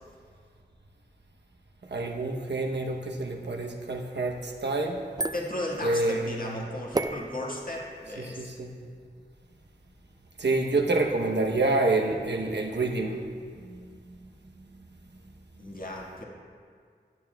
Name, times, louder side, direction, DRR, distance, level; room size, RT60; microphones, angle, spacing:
voice 1, 1.9-5.0 5.8-6.7 8.2-8.7 10.4-13.2 13.6-14.0, right 2 dB, 85° right, 1 dB, 0.8 m, -28 dB
sound 1, 5.1-10.9, right 2 dB, 25° right, 0.3 m, -38 dB
voice 2, 5.3-8.5 15.6-16.2, left 1 dB, 55° left, -3 dB, 1.6 m, -35 dB
15.0 x 8.9 x 2.2 m, 2.1 s
wide cardioid pair, 45°, 17 cm